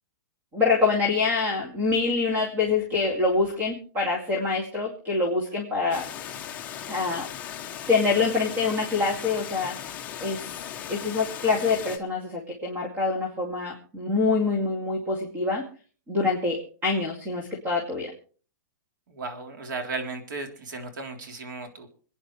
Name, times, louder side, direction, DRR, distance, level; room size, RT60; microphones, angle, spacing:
voice 1, 0.5-6.1 6.9-7.3 7.9-9.8 10.2-10.5 10.9-15.7 16.1-18.1, left 4 dB, 15° right, 0 dB, 2.4 m, -25 dB
Water, 5.9-12.0, left 9 dB, 15° left, 0.9 m, -37 dB
voice 2, 19.1-21.9, right 3 dB, 70° right, 5 dB, 3.5 m, -35 dB
27.0 x 10.0 x 3.3 m, 0.40 s
hypercardioid pair, 175°, 11 cm